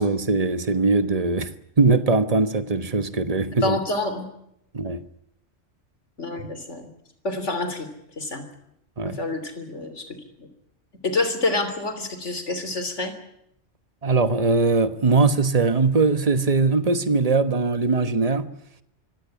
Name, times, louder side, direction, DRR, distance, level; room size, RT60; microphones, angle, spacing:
voice 1, 0.0-3.8 4.7-5.0 6.4-6.5 9.0-9.2 14.0-18.5, right 3 dB, 35° right, 1.3 m, -21 dB
voice 2, 3.6-4.3 6.2-6.9 7.2-7.9 8.2-8.4 9.2-10.1 10.4-10.5 11.0-13.1, left 2 dB, 80° left, 3.6 m, -27 dB
24.5 x 16.5 x 9.7 m
omnidirectional pair, 1.2 m